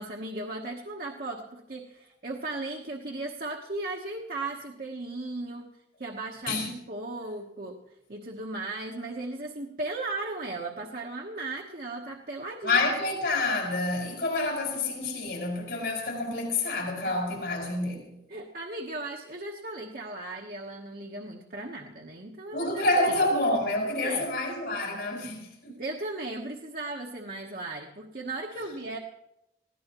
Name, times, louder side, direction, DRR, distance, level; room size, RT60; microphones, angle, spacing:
voice 1, 0.0-5.7 6.0-7.8 8.1-12.8 17.0-17.1 18.3-23.2 24.0-24.3 25.7-29.0, right 2 dB, 55° right, 1.1 m, -36 dB
voice 2, 12.6-18.2 22.5-25.8, left 2 dB, 70° left, 5.0 m, -28 dB
20.5 x 16.0 x 3.0 m
head